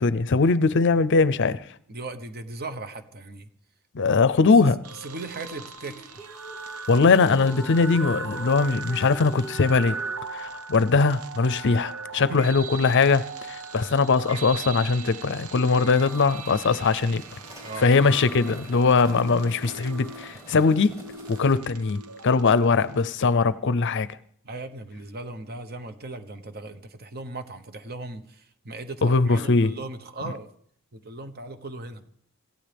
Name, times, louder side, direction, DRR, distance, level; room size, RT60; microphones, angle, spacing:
voice 1, 0.0-1.6 3.9-4.8 6.9-10.0 10.3-17.2 17.8-21.0 21.3-24.2 29.0-29.7, left 4 dB, 55° left, 0.5 m, -21 dB
voice 2, 1.9-3.5 4.6-4.7 5.0-6.1 12.3-12.5 17.6-18.0 24.4-30.5 30.9-32.1, right 2 dB, 45° right, 1.1 m, -38 dB
sound 1, 4.8-23.1, right 4 dB, 90° right, 1.0 m, -39 dB
sound 2, 5.8-10.3, right 1 dB, 10° left, 1.0 m, -42 dB
sound 3, 16.0-21.5, equal, 15° right, 4.0 m, -48 dB
26.0 x 15.5 x 3.5 m
head